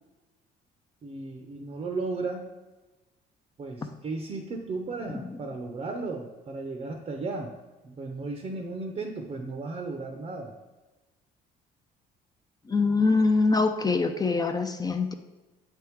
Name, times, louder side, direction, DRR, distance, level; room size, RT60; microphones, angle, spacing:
voice 1, 1.0-2.5 3.6-7.5 7.8-10.5, right 3 dB, 35° right, 4 dB, 0.7 m, -35 dB
voice 2, 12.7-15.1, left 3 dB, 20° left, 6 dB, 0.5 m, -24 dB
7.7 x 3.5 x 4.5 m, 1.1 s
cardioid pair, 110°, 17 cm